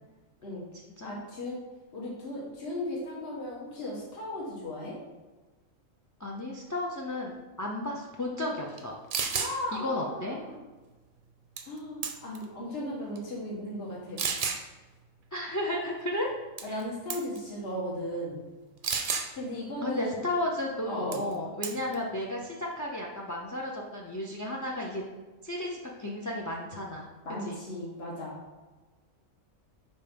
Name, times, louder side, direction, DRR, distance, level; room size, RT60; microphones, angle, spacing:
voice 1, 1.0-1.6 1.9-5.0 9.3-10.6 11.6-14.2 16.6-18.4 19.3-20.2 20.8-21.2 27.2-28.3, left 1 dB, 50° left, -5 dB, 1.6 m, -36 dB
voice 2, 6.2-9.0 9.7-10.4 15.3-16.3 16.7-16.8 19.8-25.0 25.4-27.1 27.4-27.6, left 1 dB, 25° left, -1 dB, 0.4 m, -33 dB
sound 1, 8.8-8.9 9.1-9.5 11.6-11.8 12.0-12.4 13.1-13.2 14.2-14.6 16.6-16.8 17.1-17.4 18.8-19.3 21.1-21.3 21.6-21.9, right 6 dB, 50° right, 0.7 m, -31 dB
5.4 x 4.3 x 5.2 m, 1.3 s
omnidirectional pair, 1.4 m